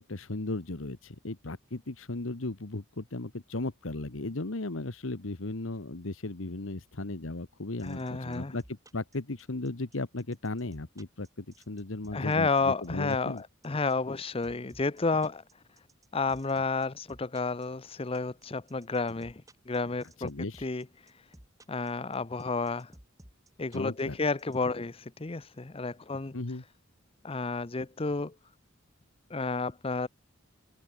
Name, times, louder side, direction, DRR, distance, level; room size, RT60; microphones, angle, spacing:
voice 1, 0.0-8.6 8.9-13.4 20.2-20.6 23.7-24.2 26.3-26.6, left 2 dB, 80° left, 1.3 m, -36 dB
voice 2, 7.8-8.5 12.1-15.4 16.1-20.3 20.6-20.9 21.7-22.9 23.6-26.3 27.2-28.3 29.3-30.1, left 3 dB, 30° left, 0.7 m, -31 dB
sound 1, 7.8-24.6, right 1 dB, 15° right, 3.0 m, -54 dB
head